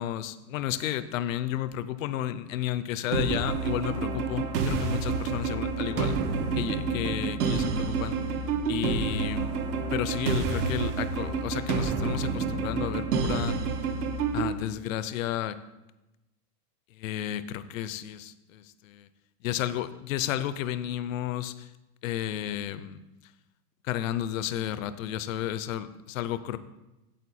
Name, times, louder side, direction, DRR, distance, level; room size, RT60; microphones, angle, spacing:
voice 1, 0.0-6.2 6.6-8.2 8.7-9.6 9.9-13.6 14.3-15.6 17.0-19.1 19.4-21.7 22.0-23.0 23.8-26.6, left 12 dB, 60° left, 13 dB, 0.6 m, -32 dB
sound 1, 3.1-14.5, right 4 dB, 80° right, 1.3 m, -29 dB
9.3 x 7.5 x 4.2 m, 0.99 s
supercardioid pair, 175°, 46 cm